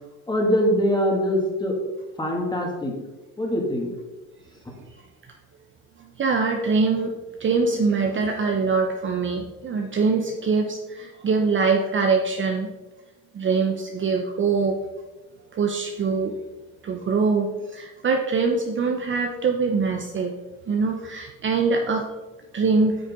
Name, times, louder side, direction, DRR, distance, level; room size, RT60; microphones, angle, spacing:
voice 1, 0.3-1.8 2.2-2.9 3.4-3.9, equal, 10° left, 0 dB, 2.3 m, -23 dB
voice 2, 6.2-7.1 7.4-12.7 13.3-14.8 15.5-16.3 16.8-20.3 20.7-22.1 22.5-23.0, right 4 dB, 30° right, 3 dB, 0.9 m, -23 dB
8.9 x 6.4 x 3.7 m, 1.1 s
supercardioid pair, 90°, 39 cm